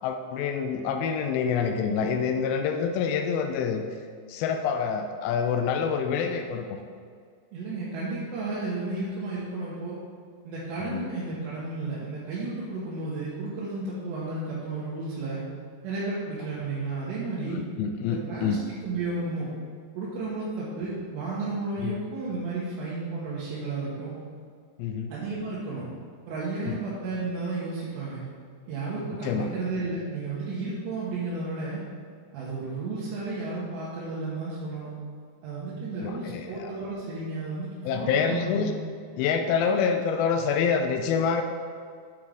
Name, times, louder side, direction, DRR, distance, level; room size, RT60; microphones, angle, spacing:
voice 1, 0.0-3.8 4.3-6.8 10.8-11.1 17.5-18.6 21.8-22.0 24.8-25.1 26.7-26.8 29.2-29.5 36.0-36.7 37.8-38.7 39.2-41.4, left 6 dB, 85° left, 5 dB, 2.1 m, -27 dB
voice 2, 7.5-10.0 10.5-15.5 15.8-17.6 18.1-19.5 20.0-24.2 25.1-25.9 26.3-28.2 28.7-31.8 32.3-34.9 35.4-38.7, right 3 dB, 85° right, -9 dB, 3.6 m, -33 dB
9.0 x 8.7 x 3.6 m, 2.1 s
omnidirectional pair, 4.9 m